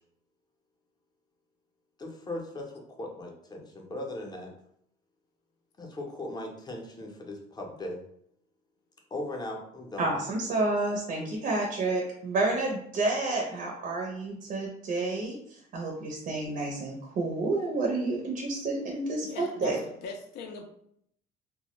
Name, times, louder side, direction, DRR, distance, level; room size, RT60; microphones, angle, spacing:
voice 1, 2.0-4.5 5.8-8.0 9.1-10.1, left 1 dB, 25° left, 1 dB, 0.6 m, -38 dB
voice 2, 10.0-15.3 15.7-19.8, right 2 dB, 55° right, -1 dB, 0.5 m, -30 dB
voice 3, 19.2-19.8 20.0-20.6, left 4 dB, 75° left, 4 dB, 0.4 m, -40 dB
2.2 x 2.0 x 2.9 m, 0.68 s
cardioid pair, 110°, 17 cm